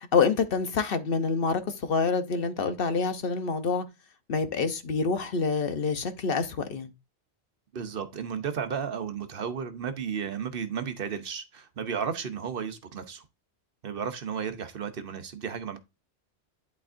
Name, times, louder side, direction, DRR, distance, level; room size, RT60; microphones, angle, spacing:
voice 1, 0.1-3.8 4.3-6.9, left 5 dB, 60° left, 0.9 m, -27 dB
voice 2, 7.7-13.2 13.8-15.8, right 7 dB, 60° right, 1.0 m, -33 dB
11.0 x 4.3 x 2.5 m
omnidirectional pair, 1.1 m